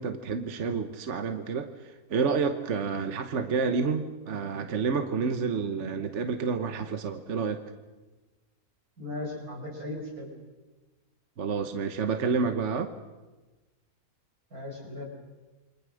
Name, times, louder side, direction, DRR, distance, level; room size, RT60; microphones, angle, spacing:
voice 1, 0.0-7.6 11.4-12.9, right 5 dB, 55° right, 7 dB, 1.4 m, -29 dB
voice 2, 9.0-10.3 14.5-15.1, left 1 dB, 85° right, 1 dB, 5.7 m, -37 dB
28.0 x 24.0 x 6.5 m, 1.2 s
omnidirectional pair, 1.5 m